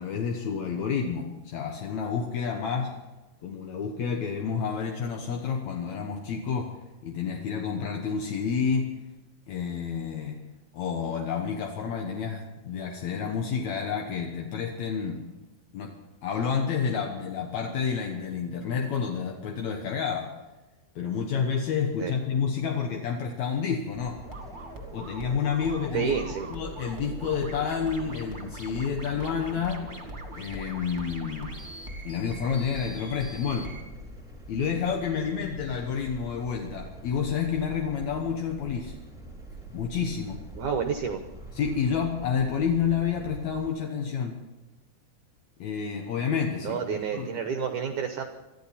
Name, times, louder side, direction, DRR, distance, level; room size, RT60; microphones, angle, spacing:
voice 1, 0.0-3.0 3.4-6.8 7.0-9.0 9.5-10.4 10.7-15.3 15.7-15.9 16.2-20.3 21.0-24.2 24.9-26.1 26.5-29.9 30.3-31.6 32.0-33.7 34.5-38.9 39.7-40.4 41.5-44.4 45.6-47.4, left 6 dB, 65° left, 1 dB, 1.9 m, -29 dB
sound 1, 23.9-43.7, right 1 dB, ahead, 2.2 m, -45 dB
sound 2, 24.2-33.8, right 2 dB, 15° right, 1.8 m, -42 dB
voice 2, 25.9-26.5 40.6-41.2 46.6-48.2, right 6 dB, 70° right, 6 dB, 1.9 m, -29 dB
24.0 x 14.0 x 4.2 m, 1.1 s
omnidirectional pair, 4.7 m